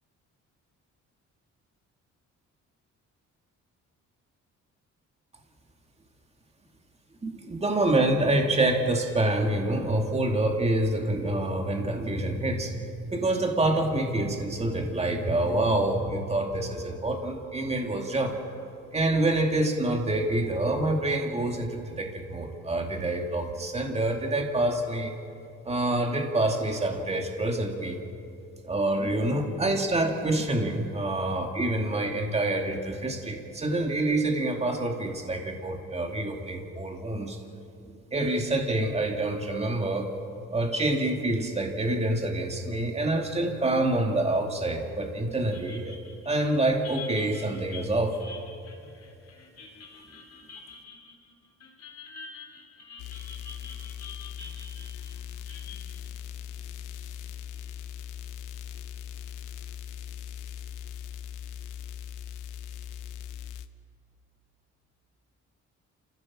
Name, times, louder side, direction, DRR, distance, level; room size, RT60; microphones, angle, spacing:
voice 1, 7.2-18.4 18.9-25.1 25.6-28.0 28.6-37.4 38.1-40.1 40.5-46.0 46.2-48.2, right 2 dB, 20° right, 2 dB, 2.5 m, -27 dB
sound 1, 45.5-57.3, left 4 dB, 55° left, 3.4 m, -47 dB
sound 2, 53.0-63.7, left 9 dB, 85° left, 0.9 m, -40 dB
28.0 x 15.5 x 7.4 m, 2.6 s
cardioid pair, 90°, 30 cm